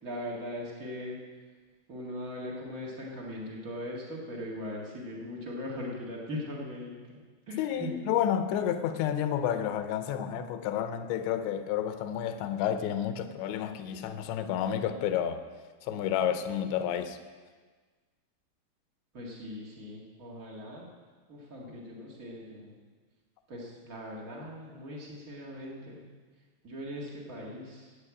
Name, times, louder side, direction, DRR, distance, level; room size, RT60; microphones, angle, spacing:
voice 1, 0.0-1.2 1.9-8.0 19.1-20.9 21.3-22.7 23.5-26.0 26.6-28.0, left 1 dB, 75° right, 0.7 m, -40 dB
voice 2, 7.6-15.4 15.8-17.2, left 9 dB, 80° left, 2.9 m, -30 dB
11.5 x 8.7 x 8.4 m
omnidirectional pair, 5.2 m